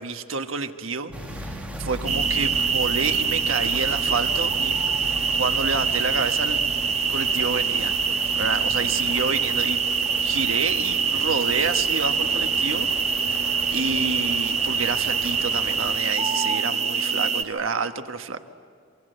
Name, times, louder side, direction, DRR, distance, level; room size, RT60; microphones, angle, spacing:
voice 1, 0.0-4.8 5.3-6.6 7.1-9.8 10.2-13.4 13.7-18.6, right 4 dB, 90° right, 7 dB, 1.4 m, -29 dB
sound 1, 1.1-9.7, equal, 50° left, 6.4 m, -39 dB
sound 2, 1.1-16.0, right 1 dB, 5° right, 1.8 m, -40 dB
sound 3, 2.1-17.4, right 5 dB, 35° right, 1.2 m, -24 dB
28.0 x 24.5 x 8.0 m, 2.3 s
head